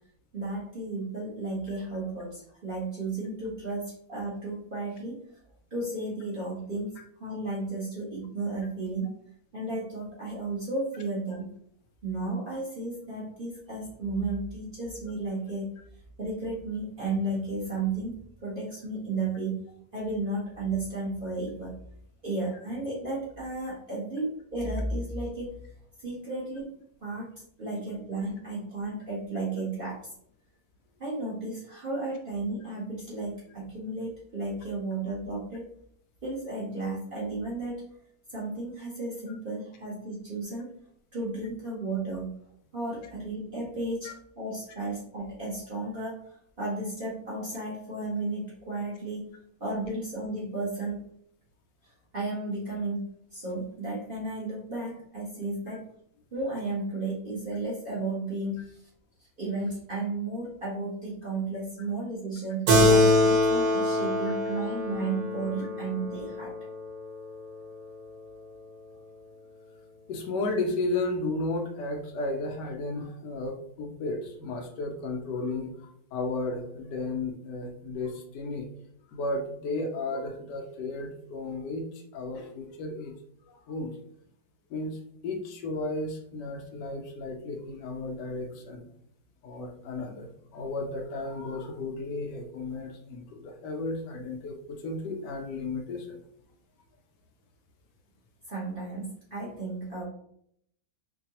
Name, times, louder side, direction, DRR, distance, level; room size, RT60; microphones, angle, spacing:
voice 1, 0.3-5.2 5.7-9.1 9.5-11.5 12.0-15.7 16.2-19.6 19.9-21.7 22.2-25.6 26.0-26.7 27.0-27.3 27.6-30.0 31.0-35.7 36.2-37.9 38.3-40.7 41.1-42.3 42.7-46.2 46.6-49.3 49.6-51.0 52.1-55.9 56.3-58.8 59.2-66.5 98.5-100.1, right 2 dB, 40° right, -7 dB, 0.9 m, -33 dB
Keyboard (musical), 62.7-67.5, left 1 dB, 90° right, 1.6 m, -24 dB
voice 2, 70.1-78.7 79.1-83.1 83.5-84.0 84.7-88.9 89.4-96.2, left 2 dB, 75° left, 3 dB, 1.1 m, -34 dB
4.5 x 2.2 x 2.8 m, 0.70 s
omnidirectional pair, 1.9 m